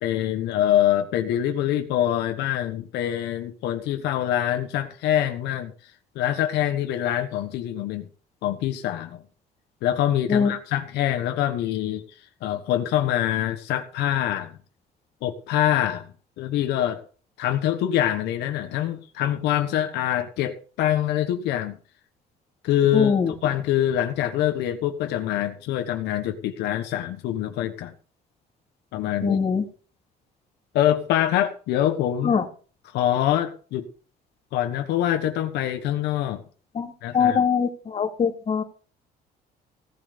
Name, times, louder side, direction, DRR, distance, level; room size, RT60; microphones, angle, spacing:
voice 1, 0.0-5.7 6.1-8.1 8.4-9.2 9.8-12.0 12.4-14.6 15.2-16.1 16.4-17.0 17.4-21.8 22.6-27.9 28.9-29.4 30.7-32.3 32.9-33.9 34.5-36.4 37.0-37.4, left 11 dB, 85° left, 6 dB, 1.3 m, -25 dB
voice 2, 22.9-23.3 29.2-29.6 32.2-32.4 36.7-38.6, left 6 dB, 40° left, 4 dB, 2.5 m, -22 dB
16.5 x 7.6 x 5.2 m, 0.39 s
cardioid pair, 110°, 17 cm